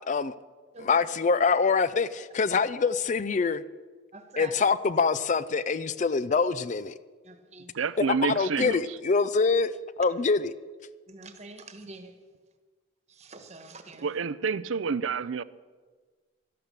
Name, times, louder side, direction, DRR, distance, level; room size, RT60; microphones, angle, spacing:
voice 1, 0.8-3.6 4.4-6.9 8.0-9.7 10.0-10.5, left 4 dB, 40° left, 0.4 m, -25 dB
voice 2, 4.1-4.5 7.2-7.7 11.1-12.1 13.1-14.1, right 3 dB, 35° right, 1.3 m, -45 dB
voice 3, 7.7-9.0 14.0-15.4, right 5 dB, 80° right, 0.5 m, -29 dB
12.5 x 12.0 x 6.8 m
head